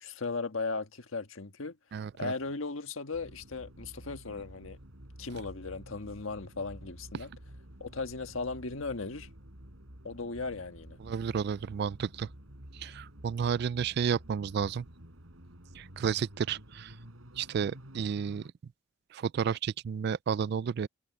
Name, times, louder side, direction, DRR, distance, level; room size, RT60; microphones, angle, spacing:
voice 1, 0.0-1.8 2.2-4.8 5.2-7.3 7.8-9.3 10.0-11.0, left 3 dB, 80° left, 1.5 m, -37 dB
voice 2, 1.9-2.3 7.1-7.3 11.0-12.3 12.7-14.9 15.7-17.0 17.4-18.4 19.1-20.9, right 7 dB, 50° right, 0.3 m, -32 dB
sound 1, 3.1-18.5, equal, 85° right, 5.0 m, -50 dB
head